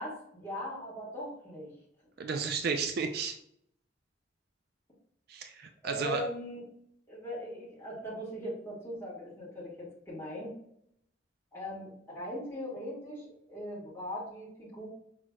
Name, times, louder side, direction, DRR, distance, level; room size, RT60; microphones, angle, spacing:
voice 1, 0.0-1.7 5.8-6.6 7.1-10.5 11.5-14.9, equal, 15° left, -8 dB, 1.5 m, -40 dB
voice 2, 2.2-3.4 5.3-6.2, right 5 dB, 60° right, 6 dB, 0.4 m, -33 dB
5.8 x 3.1 x 2.3 m, 0.73 s
head